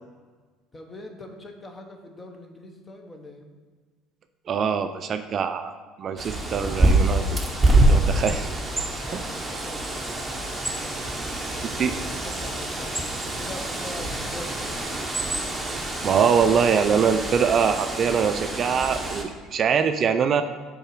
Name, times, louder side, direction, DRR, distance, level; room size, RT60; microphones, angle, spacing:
voice 1, 0.7-3.5 9.0-10.0 10.6-14.8, left 2 dB, 20° left, 4 dB, 0.9 m, -43 dB
voice 2, 4.5-5.7 6.0-7.4 7.7-8.5 9.1-9.2 11.6-11.9 16.0-20.4, right 7 dB, 45° right, 9 dB, 0.3 m, -23 dB
Bird, 6.2-19.2, right 2 dB, 10° right, 0.9 m, -26 dB
6.4 x 3.8 x 4.8 m, 1.4 s
supercardioid pair, 85°, 0 cm